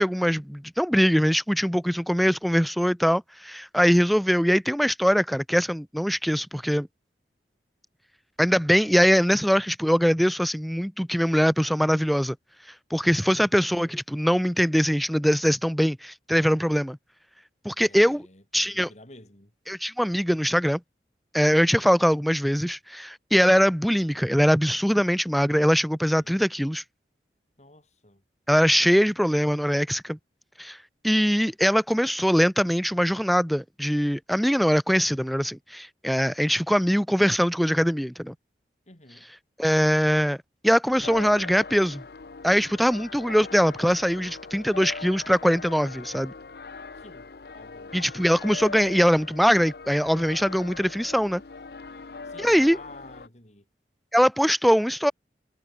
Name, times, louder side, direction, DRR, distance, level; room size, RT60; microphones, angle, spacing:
voice 1, 0.0-6.9 8.4-12.4 12.9-17.0 17.6-18.3 18.5-18.9 19.7-20.8 21.3-26.8 28.5-30.2 30.6-30.8 31.0-38.3 39.6-40.4 40.6-42.0 42.4-46.3 47.9-51.4 52.4-52.8 54.1-55.1, equal, ahead, 0.4 m, -22 dB
voice 2, 13.1-13.5 17.8-19.5 26.1-26.4 27.6-28.2 38.9-39.3 46.9-47.9 52.2-53.7, left 2 dB, 40° left, 4.0 m, -50 dB
sound 1, 40.9-53.3, left 4 dB, 60° left, 0.7 m, -41 dB
head